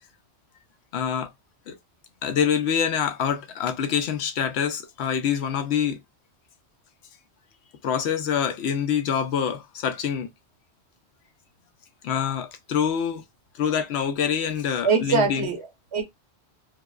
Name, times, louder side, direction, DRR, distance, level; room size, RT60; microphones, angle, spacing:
voice 1, 0.9-1.3 1.7-1.8 2.2-6.0 7.8-10.3 12.0-13.2 13.5-15.5, left 8 dB, 75° left, 0.9 m, -25 dB
voice 2, 14.8-16.0, right 5 dB, 75° right, 1.2 m, -23 dB
4.9 x 2.1 x 2.3 m
omnidirectional pair, 1.1 m